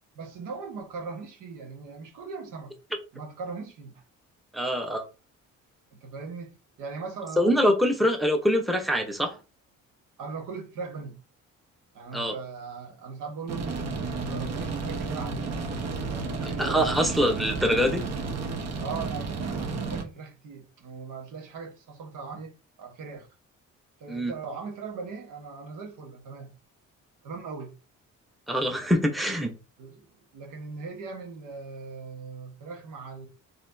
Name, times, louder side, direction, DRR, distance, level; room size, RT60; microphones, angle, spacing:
voice 1, 0.1-2.7 3.1-4.0 5.9-7.7 8.0-8.1 10.2-11.2 11.9-15.5 16.1-17.2 18.8-22.5 22.8-23.3 24.0-26.5 27.2-27.7 29.8-30.1 30.3-33.3, right 4 dB, 80° right, 1.3 m, -39 dB
voice 2, 4.5-5.0 7.4-9.4 12.1-12.3 16.6-18.1 24.1-24.3 28.5-29.5, equal, ahead, 0.8 m, -24 dB
sound 1, 13.5-20.0, right 4 dB, 55° right, 1.1 m, -32 dB
4.2 x 3.6 x 2.7 m
cardioid pair, 90°, 30 cm